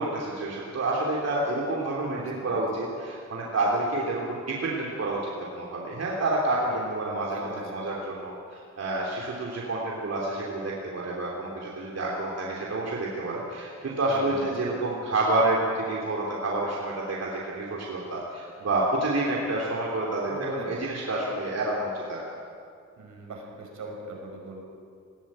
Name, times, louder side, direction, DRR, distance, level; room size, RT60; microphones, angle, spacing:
voice 1, 0.0-20.3 20.6-22.2, right 2 dB, 55° right, -3 dB, 3.4 m, -29 dB
voice 2, 2.0-2.6 6.7-7.8 14.1-14.5 20.3-20.8 23.0-24.6, right 2 dB, 80° right, 0 dB, 5.5 m, -39 dB
20.5 x 16.5 x 8.9 m, 2.3 s
wide cardioid pair, 105°, 30 cm